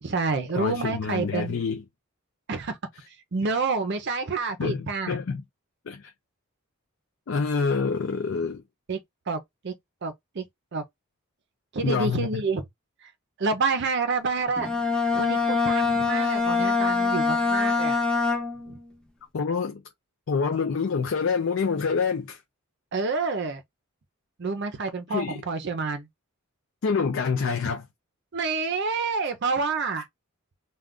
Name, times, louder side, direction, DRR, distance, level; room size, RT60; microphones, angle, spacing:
voice 1, 0.0-1.6 2.5-2.8 3.3-5.2 8.9-9.0 9.3-9.7 10.0-10.4 10.7-10.8 11.7-12.6 13.0-13.1 13.4-14.7 15.1-18.0 18.7-18.8 22.9-23.6 24.4-26.1 28.3-30.1, right 4 dB, 50° right, 0.5 m, -28 dB
voice 2, 0.5-1.8 3.5-3.6 4.6-5.4 5.9-6.1 7.3-8.6 11.8-12.4 19.3-19.8 20.3-22.4 25.1-25.4 26.8-27.9, left 5 dB, 60° left, 0.4 m, -27 dB
Bowed string instrument, 14.6-18.8, left 4 dB, 5° left, 0.5 m, -24 dB
2.4 x 2.2 x 3.5 m
head